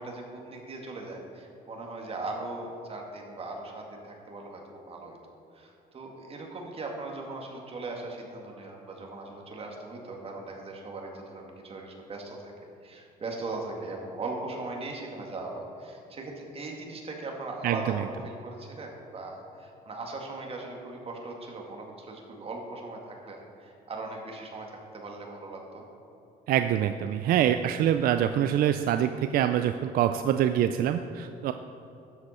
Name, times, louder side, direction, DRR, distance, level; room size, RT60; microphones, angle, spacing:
voice 1, 0.0-5.2 5.5-12.5 12.8-25.8, right 2 dB, 35° right, 1 dB, 2.0 m, -39 dB
voice 2, 17.6-18.0 26.5-31.5, right 10 dB, 60° right, 9 dB, 0.4 m, -25 dB
12.5 x 7.7 x 4.3 m, 2.9 s
cardioid pair, 110°, 17 cm